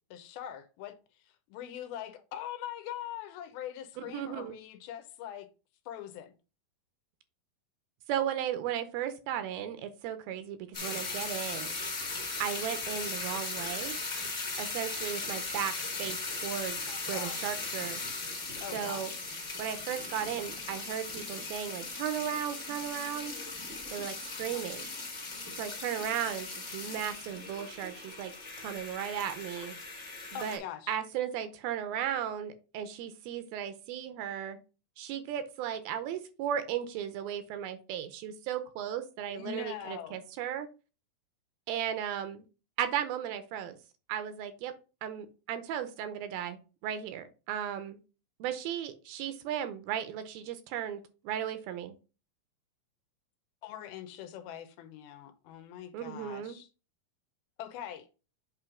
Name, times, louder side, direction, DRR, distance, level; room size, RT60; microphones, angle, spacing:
voice 1, 0.1-1.0 1.5-5.5 5.9-6.3 16.9-17.6 18.6-19.2 24.5-24.6 29.6-29.7 30.3-30.9 39.3-40.2 53.6-56.7 57.6-58.1, left 10 dB, 80° left, 2.6 m, -42 dB
voice 2, 4.0-4.6 8.1-11.8 12.4-14.0 14.6-18.0 18.7-19.1 19.6-23.3 23.9-24.9 25.6-26.5 26.7-29.7 30.3-30.6 30.9-34.6 35.0-40.7 41.7-42.5 42.8-43.8 44.1-44.8 45.0-48.0 48.4-51.9 55.9-56.6, right 10 dB, 80° right, 2.4 m, -36 dB
sound 1, 10.7-30.6, left 3 dB, 35° left, 1.2 m, -38 dB
8.3 x 3.1 x 4.9 m
omnidirectional pair, 4.5 m